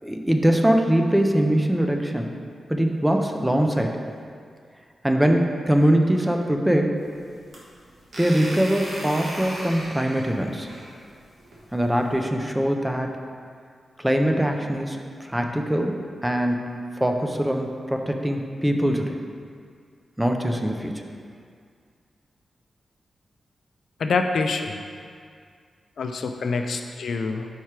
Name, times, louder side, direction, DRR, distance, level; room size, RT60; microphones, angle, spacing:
voice 1, 0.0-2.3 2.7-4.0 5.0-7.1 8.2-10.7 11.7-13.2 14.0-19.2 20.2-21.0, right 1 dB, 5° right, 3 dB, 0.4 m, -22 dB
sound 1, 7.0-12.2, right 1 dB, 60° right, 1.1 m, -37 dB
voice 2, 24.0-24.8 26.0-27.5, left 4 dB, 70° left, 5 dB, 0.3 m, -26 dB
4.7 x 4.6 x 4.4 m, 2.2 s
wide cardioid pair, 150°, 0 cm